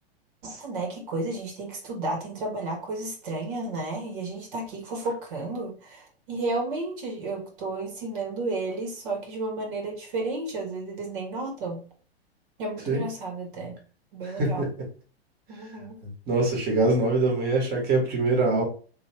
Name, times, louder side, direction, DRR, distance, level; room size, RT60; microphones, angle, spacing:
voice 1, 0.4-11.8 12.6-13.8 14.1-14.7 15.5-16.0, right 2 dB, 55° right, 1.7 m, -32 dB
voice 2, 14.2-14.9 16.3-18.6, right 2 dB, 30° right, 1.6 m, -24 dB
3.2 x 3.0 x 3.3 m
hypercardioid pair, 115°, 32 cm